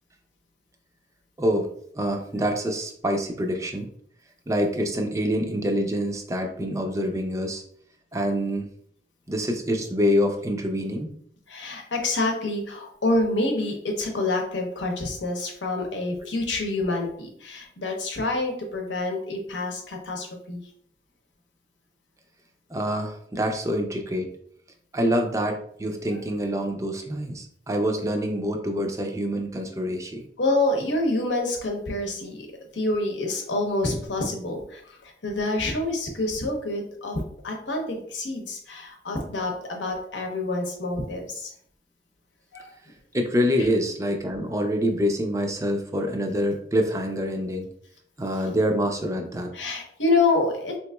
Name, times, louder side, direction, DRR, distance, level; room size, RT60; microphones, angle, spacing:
voice 1, 1.4-1.7 1.9-3.9 4.5-7.6 8.1-8.7 9.3-11.1 22.7-24.3 24.9-30.2 43.1-47.7 48.2-49.5, equal, 15° right, 4 dB, 0.4 m, -26 dB
voice 2, 11.5-20.6 30.4-32.5 32.7-41.5 42.5-42.7 43.6-43.7 49.5-50.8, left 2 dB, 90° left, 2 dB, 0.8 m, -27 dB
3.6 x 2.9 x 2.2 m, 0.64 s
head